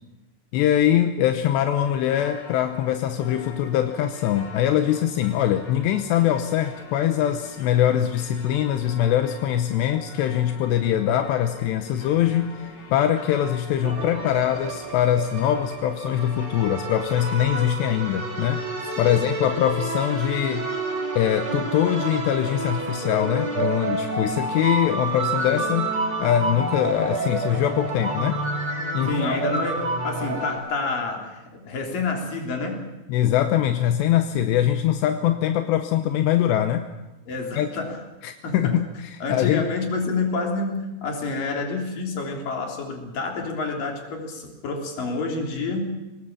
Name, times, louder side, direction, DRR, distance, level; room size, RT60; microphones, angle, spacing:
voice 1, 0.5-18.6 19.0-20.7 21.2-25.9 26.2-28.4 28.9-29.4 33.1-36.9 37.6-37.7 38.2-38.9 39.3-39.7, left 11 dB, 80° left, 7 dB, 3.1 m, -22 dB
sound 1, 1.8-17.6, left 3 dB, 30° left, 3.2 m, -44 dB
sound 2, 13.8-30.6, right 2 dB, 25° right, 6.4 m, -29 dB
voice 2, 19.0-19.3 29.1-32.9 37.3-38.0 38.4-38.8 39.2-46.0, left 3 dB, 50° left, 2 dB, 4.8 m, -28 dB
24.5 x 19.0 x 7.4 m, 1.1 s
omnidirectional pair, 5.1 m